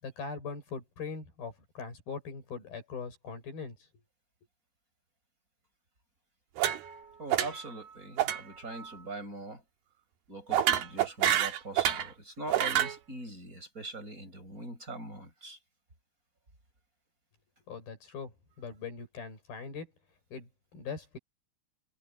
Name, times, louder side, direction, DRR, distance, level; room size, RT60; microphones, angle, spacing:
voice 1, 0.0-3.8 17.7-19.9 20.3-21.2, left 5 dB, 70° left, 8.2 m, -41 dB
sound 1, 6.6-7.0 7.3-7.7 8.2-8.4 8.7-9.0 10.5-12.1 12.5-13.0, right 11 dB, 75° right, 3.6 m, -28 dB
voice 2, 7.2-9.6 10.3-15.6, right 2 dB, 20° right, 7.4 m, -42 dB
omnidirectional pair, 4.5 m